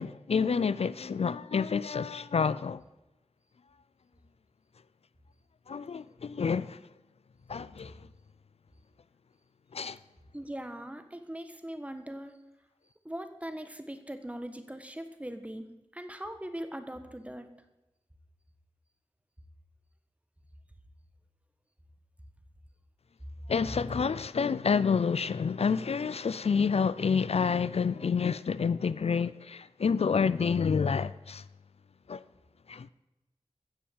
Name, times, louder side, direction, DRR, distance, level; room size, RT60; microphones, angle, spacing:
voice 1, 0.0-2.8 5.7-6.8 7.5-7.9 9.7-10.0 23.5-31.4 32.1-32.2 32.7-32.9, left 6 dB, 65° left, 0.4 m, -28 dB
voice 2, 10.3-12.3 13.0-15.6 15.9-17.5, right 1 dB, 10° right, 1.4 m, -40 dB
16.0 x 7.0 x 7.4 m
wide cardioid pair, 70°, 11 cm